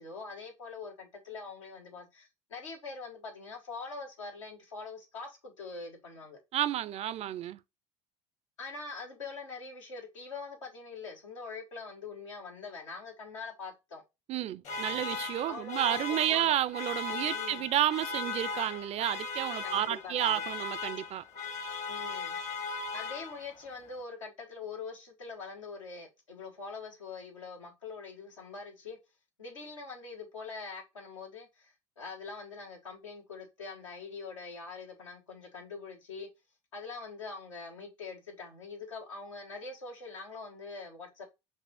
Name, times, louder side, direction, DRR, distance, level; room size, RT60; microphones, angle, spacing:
voice 1, 0.0-6.4 8.6-14.0 15.5-16.6 17.3-17.7 19.6-20.3 21.9-22.4 22.9-29.0 29.4-36.3 36.7-41.2, left 4 dB, 90° left, 1.4 m, -44 dB
voice 2, 6.5-7.6 14.3-21.2, right 12 dB, 40° right, 0.4 m, -31 dB
sound 1, 14.6-23.7, left 4 dB, 45° left, 1.1 m, -38 dB
5.4 x 2.4 x 4.0 m
hypercardioid pair, 75°, 16 cm